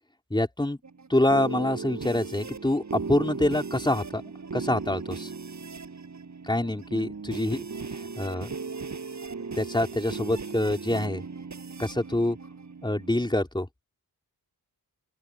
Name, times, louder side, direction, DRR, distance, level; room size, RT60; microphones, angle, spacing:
voice 1, 0.3-0.8 1.1-5.3 6.5-7.6 8.2-8.5 9.5-11.2 11.8-12.4 12.8-13.7, left 1 dB, 10° left, 3.7 m, -26 dB
sound 1, 0.8-13.3, right 4 dB, 45° right, 5.4 m, -37 dB
open air
wide cardioid pair, 140°, 38 cm